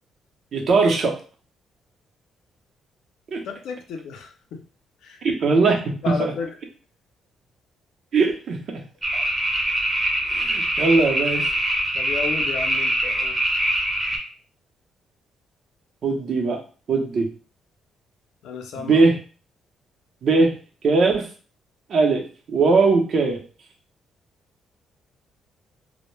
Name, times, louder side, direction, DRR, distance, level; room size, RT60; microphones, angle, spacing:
voice 1, 0.5-1.1 3.3-3.4 5.2-6.3 8.1-8.8 9.1-9.2 10.3-11.5 16.0-16.6 16.9-17.3 18.9-19.2 20.2-20.5 20.8-21.3 21.9-22.2 22.5-23.4, right 3 dB, 60° right, 1 dB, 0.6 m, -20 dB
voice 2, 3.4-4.6 5.0-5.2 6.0-6.5 11.9-13.3 18.4-19.0, left 5 dB, 80° left, 4 dB, 0.5 m, -32 dB
sound 1, 9.0-14.2, right 1 dB, 20° right, 0.6 m, -23 dB
2.1 x 2.1 x 3.1 m, 0.38 s
cardioid pair, 90°, 0 cm